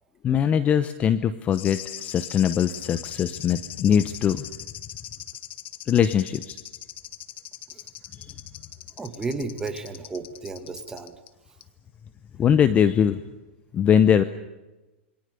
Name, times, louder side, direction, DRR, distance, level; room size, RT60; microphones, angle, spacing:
voice 1, 0.2-4.4 5.9-6.6 12.4-13.2 13.7-14.2, left 8 dB, 20° left, 13 dB, 0.8 m, -21 dB
sound 1, 1.5-11.3 11.6-11.7, left 13 dB, 60° left, 1.4 m, -40 dB
voice 2, 9.0-11.1, right 3 dB, 10° right, 6 dB, 2.2 m, -33 dB
28.0 x 23.5 x 6.9 m, 1.1 s
supercardioid pair, 155°, 7 cm